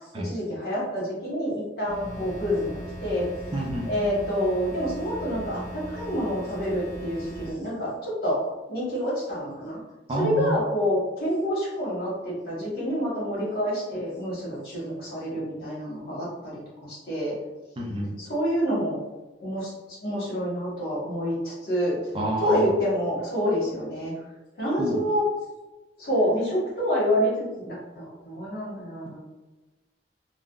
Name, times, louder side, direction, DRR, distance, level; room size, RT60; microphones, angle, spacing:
voice 1, 0.2-2.7 3.0-3.3 3.9-8.4 8.7-9.8 10.2-17.3 18.2-19.0 19.4-19.7 20.0-22.0 22.4-24.1 24.6-25.2 26.0-29.2, equal, 60° left, -6 dB, 1.2 m, -27 dB
sound 1, 1.9-7.5, right 1 dB, 40° left, 0.9 m, -38 dB
voice 2, 3.5-3.9 10.1-10.5 17.8-18.1 22.1-22.6 24.8-25.0, right 1 dB, 30° right, -1 dB, 0.4 m, -28 dB
3.5 x 2.0 x 2.4 m, 1.2 s
head